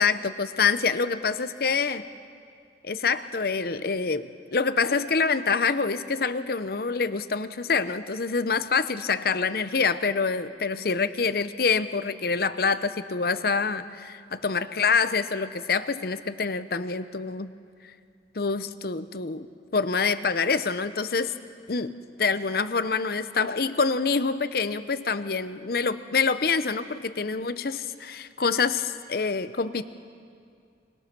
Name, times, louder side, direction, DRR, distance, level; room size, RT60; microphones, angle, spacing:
voice 1, 0.0-2.0 2.8-17.5 18.3-19.5 19.7-21.3 21.7-29.8, left 5 dB, 55° left, 12 dB, 0.7 m, -26 dB
25.5 x 20.5 x 6.1 m, 2.3 s
head